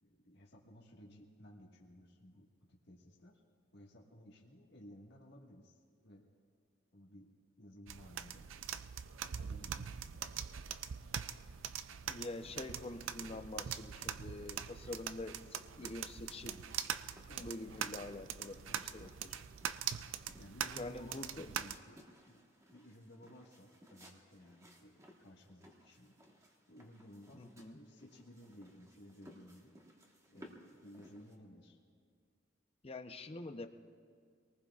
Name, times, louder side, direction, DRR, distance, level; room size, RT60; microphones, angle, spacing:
voice 1, 0.0-3.4 3.7-6.2 6.9-7.3 7.6-8.5 9.2-10.3 17.3-17.9 18.7-18.9 19.2-19.5 20.4-22.4 22.7-26.1 26.7-29.7 30.3-31.8, equal, 60° left, -2 dB, 1.6 m, -57 dB
sound 1, 7.9-21.8, right 9 dB, 80° right, 0.4 m, -43 dB
voice 2, 12.1-16.6 17.4-19.4 20.7-21.5 27.3-27.8 32.8-33.7, left 2 dB, 30° left, 8 dB, 0.7 m, -46 dB
sound 2, 12.2-31.4, equal, 15° right, 1.3 m, -62 dB
25.5 x 19.0 x 2.4 m, 2.1 s
head